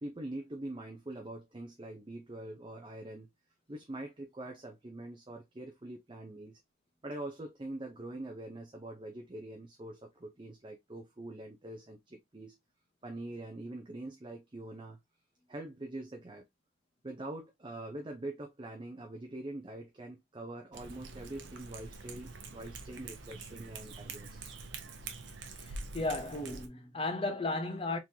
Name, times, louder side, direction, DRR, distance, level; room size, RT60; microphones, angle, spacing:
voice 1, 0.0-3.3 3.7-6.6 7.0-12.5 13.0-15.0 15.5-16.5 17.0-24.4, right 1 dB, 25° right, 0.6 m, -44 dB
Cat, 20.7-26.7, right 3 dB, 65° right, 0.8 m, -45 dB
voice 2, 25.6-28.0, left 2 dB, 25° left, 0.7 m, -35 dB
3.7 x 3.0 x 2.8 m
head